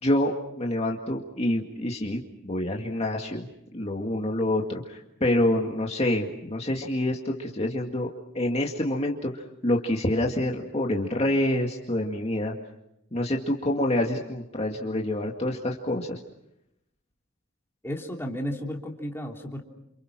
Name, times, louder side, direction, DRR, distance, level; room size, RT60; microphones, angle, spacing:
voice 1, 0.0-8.1 8.3-12.5 13.1-16.2, left 1 dB, 30° left, 0 dB, 2.1 m, -27 dB
voice 2, 17.8-19.6, equal, 10° left, 0 dB, 3.2 m, -33 dB
30.0 x 28.0 x 6.1 m, 0.84 s
head